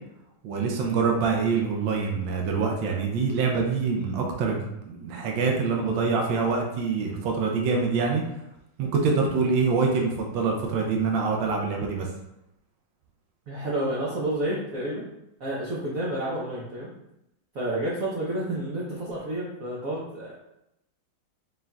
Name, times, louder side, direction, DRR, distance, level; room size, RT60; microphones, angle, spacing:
voice 1, 0.4-8.2 8.8-12.1, right 4 dB, 75° right, 1 dB, 1.4 m, -25 dB
voice 2, 13.5-15.1 15.4-16.9 17.5-20.3, right 1 dB, 55° right, -6 dB, 1.0 m, -30 dB
4.2 x 3.8 x 2.3 m, 0.85 s
omnidirectional pair, 2.2 m